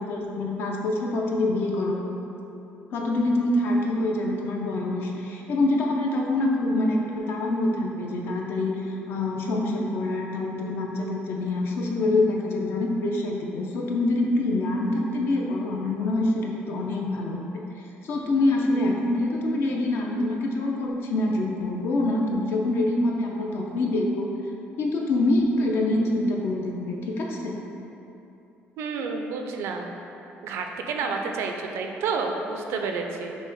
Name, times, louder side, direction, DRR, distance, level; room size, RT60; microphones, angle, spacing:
voice 1, 0.0-2.0 2.9-7.0 7.3-8.7 9.1-17.5 18.0-24.3 24.8-27.5, left 2 dB, 55° left, 0 dB, 0.6 m, -25 dB
voice 2, 28.8-29.9 30.4-33.4, right 4 dB, 75° right, 3 dB, 0.4 m, -30 dB
5.9 x 2.2 x 4.0 m, 2.9 s
cardioid pair, 155°, 4 cm